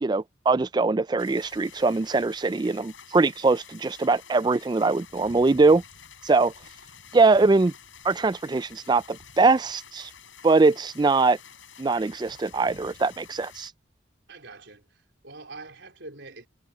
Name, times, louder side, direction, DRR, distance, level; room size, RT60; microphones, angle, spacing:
voice 1, 0.0-5.8 6.2-6.5 7.1-7.7 8.0-10.1 10.4-11.4 11.8-13.7, right 3 dB, 20° right, 0.3 m, -22 dB
sound 1, 1.2-13.7, left 7 dB, 75° left, 7.8 m, -49 dB
voice 2, 14.3-16.5, right 3 dB, 65° right, 4.2 m, -44 dB
head